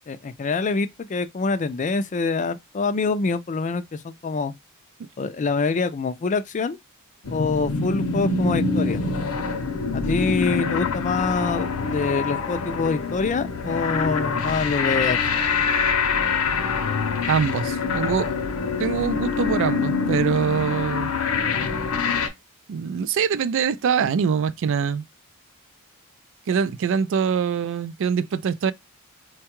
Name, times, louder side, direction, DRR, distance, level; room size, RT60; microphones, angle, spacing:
voice 1, 0.1-4.5 5.2-6.8 7.3-9.0 9.9-15.2, left 4 dB, 35° left, 0.4 m, -25 dB
sound 1, 7.2-22.3, left 5 dB, 75° left, 0.7 m, -25 dB
voice 2, 17.3-18.3 18.8-21.1 22.7-25.0 26.5-28.7, right 6 dB, 60° right, 0.3 m, -24 dB
4.5 x 2.2 x 2.9 m
head